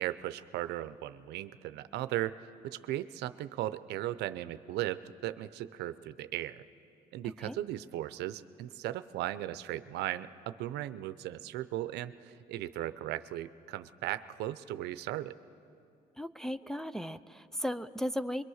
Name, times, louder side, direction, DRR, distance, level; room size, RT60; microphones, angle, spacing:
voice 1, 0.0-6.6 7.1-15.4, right 14 dB, 80° right, 13 dB, 0.7 m, -37 dB
voice 2, 16.2-18.4, equal, 5° left, 8 dB, 0.4 m, -36 dB
23.5 x 22.5 x 6.4 m, 2.6 s
cardioid pair, 110°, 17 cm